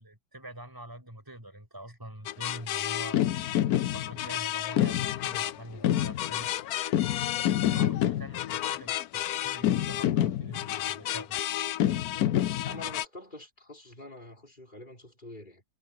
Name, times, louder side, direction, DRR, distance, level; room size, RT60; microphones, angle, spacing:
voice 1, 0.0-3.2 3.9-6.5 7.7-11.4, right 1 dB, 10° right, 6.3 m, -45 dB
sound 1, 2.3-13.1, left 12 dB, 65° left, 1.0 m, -28 dB
voice 2, 12.7-15.6, left 2 dB, 25° left, 4.8 m, -45 dB
omnidirectional pair, 2.1 m